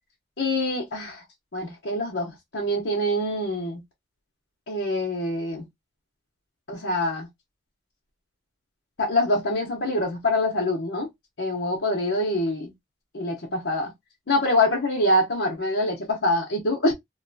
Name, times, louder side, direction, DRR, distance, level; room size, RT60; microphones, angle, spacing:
voice 1, 0.4-1.2 1.5-3.8 4.7-5.6 6.7-7.3 9.0-11.1 11.4-12.7 13.1-13.9 14.3-16.9, left 1 dB, 80° left, 0.9 m, -25 dB
2.7 x 2.3 x 2.6 m
head